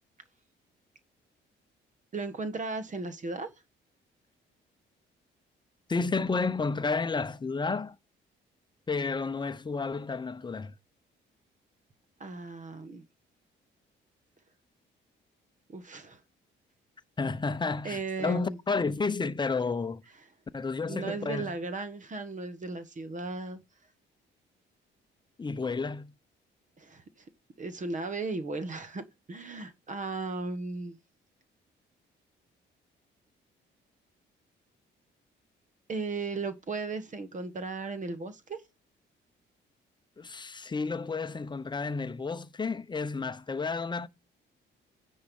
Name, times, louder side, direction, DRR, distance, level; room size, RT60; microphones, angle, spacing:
voice 1, 2.1-3.5 12.2-13.0 15.7-16.2 17.8-18.6 20.8-23.6 26.8-27.0 27.6-31.0 35.9-38.6, right 3 dB, 40° right, 1.3 m, -36 dB
voice 2, 5.9-8.0 8.9-10.7 17.2-20.0 20.5-21.5 25.4-26.1 40.2-44.1, left 4 dB, 20° left, 0.8 m, -31 dB
9.6 x 4.4 x 5.4 m
cardioid pair, 90°, 20 cm